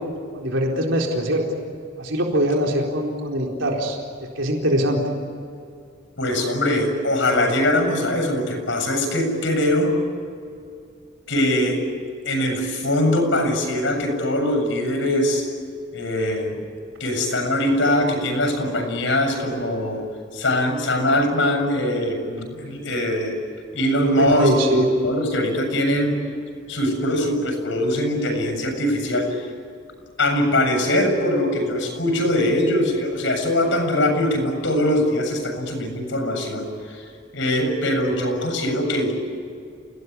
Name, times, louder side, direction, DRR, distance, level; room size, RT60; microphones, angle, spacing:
voice 1, 0.3-1.5 2.0-4.0 4.4-5.0 24.2-24.9, equal, 70° right, 0 dB, 4.2 m, -22 dB
voice 2, 6.2-10.0 11.3-11.9 12.2-15.5 15.9-16.6 17.0-20.0 20.3-23.3 23.7-26.2 26.7-29.4 30.2-37.0 37.3-39.1, left 1 dB, 65° left, 5 dB, 7.3 m, -22 dB
29.5 x 18.5 x 9.7 m, 2.3 s
head